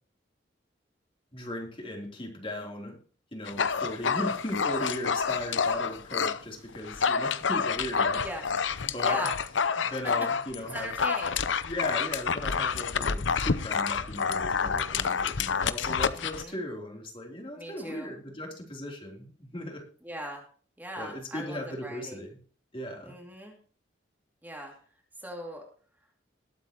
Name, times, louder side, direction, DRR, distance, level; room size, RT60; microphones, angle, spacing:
voice 1, 1.3-3.0 3.3-8.3 8.8-9.3 9.8-10.9 11.6-19.9 21.0-22.4 22.7-23.1, left 1 dB, 30° left, 1 dB, 3.5 m, -37 dB
Dog, 3.5-6.4 6.7-16.4, left 6 dB, 85° left, 0.8 m, -28 dB
voice 2, 9.0-9.4 10.0-10.1 10.7-11.3 16.1-16.6 17.5-18.1 20.0-20.4 20.8-22.2 23.0-23.6 24.4-24.7 25.2-25.6, equal, 10° right, 1 dB, 2.6 m, -39 dB
20.5 x 8.2 x 3.0 m, 0.42 s
head